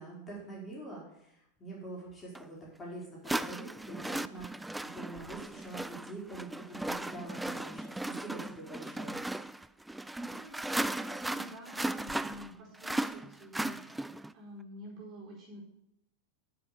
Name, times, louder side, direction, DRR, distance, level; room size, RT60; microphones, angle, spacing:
voice 1, 0.0-9.2, right 2 dB, 15° left, -4 dB, 4.4 m, -45 dB
sound 1, 2.4-2.5 3.3-14.3, right 1 dB, 5° right, 0.3 m, -37 dB
voice 2, 10.2-14.0 14.3-15.6, equal, 35° right, -3 dB, 4.4 m, -49 dB
9.5 x 7.0 x 6.8 m, 0.79 s
figure-of-eight pair, 90°, 0 cm